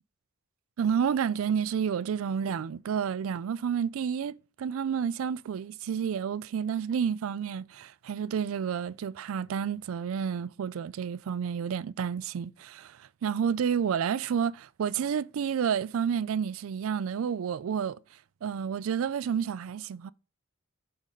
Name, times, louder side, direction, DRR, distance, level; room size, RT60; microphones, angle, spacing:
voice 1, 0.8-18.0 18.4-20.1, right 7 dB, 90° right, 0.4 m, -30 dB
7.3 x 4.0 x 5.1 m
head